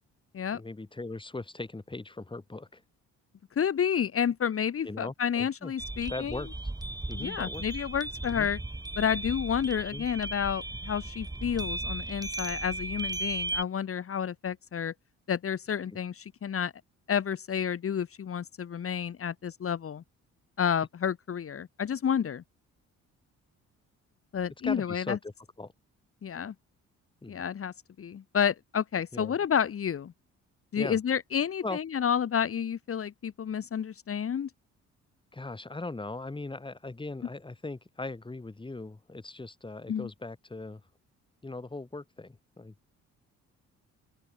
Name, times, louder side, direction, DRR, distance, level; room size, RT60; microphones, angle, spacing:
voice 1, 0.5-2.8 4.8-5.7 6.1-6.5 7.1-7.7 8.4-8.5 9.9-10.1 24.6-25.3 25.6-25.7 27.2-27.4 29.1-29.3 30.8-31.0 31.6-31.8 35.3-40.8 41.4-42.7, left 2 dB, 15° left, 4.2 m, -39 dB
voice 2, 3.6-6.4 7.1-8.6 9.0-14.9 15.3-16.7 17.1-20.0 20.6-22.4 24.3-25.2 26.2-26.5 27.3-30.1 30.7-34.5 39.9-40.1, left 8 dB, 50° left, 2.0 m, -30 dB
sound 1, 5.8-13.6, right 2 dB, 15° right, 3.2 m, -36 dB
open air
cardioid pair, 90°, 30 cm